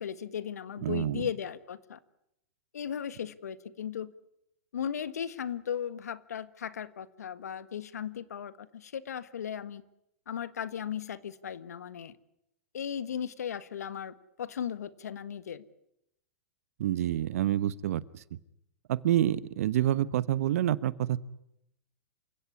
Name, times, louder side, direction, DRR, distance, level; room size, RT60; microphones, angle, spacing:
voice 1, 0.0-2.0 2.7-4.1 4.7-9.8 10.3-12.1 12.7-15.6, left 8 dB, 80° left, 15 dB, 1.5 m, -36 dB
voice 2, 0.8-1.2 16.8-18.2 18.9-21.2, right 12 dB, 65° right, 18 dB, 1.1 m, -28 dB
28.0 x 17.0 x 9.8 m, 0.81 s
hypercardioid pair, 125°, 8 cm